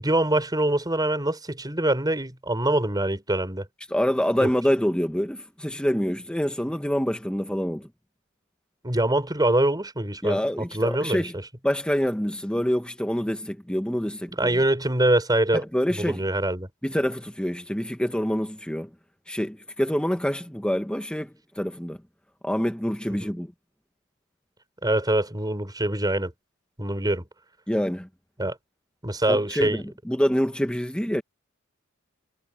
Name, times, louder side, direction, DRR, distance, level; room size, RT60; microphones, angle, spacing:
voice 1, 0.0-3.7 4.4-4.5 8.8-11.3 14.3-15.6 15.9-16.7 23.2-23.3 24.8-26.3 26.8-27.3 28.4-28.6 29.0-29.8, right 1 dB, 20° right, 5.0 m, -24 dB
voice 2, 3.9-7.9 10.2-11.3 11.6-14.6 15.5-16.2 16.8-18.9 19.3-22.0 22.4-23.5 27.7-28.1 29.3-31.2, equal, 5° left, 1.0 m, -26 dB
head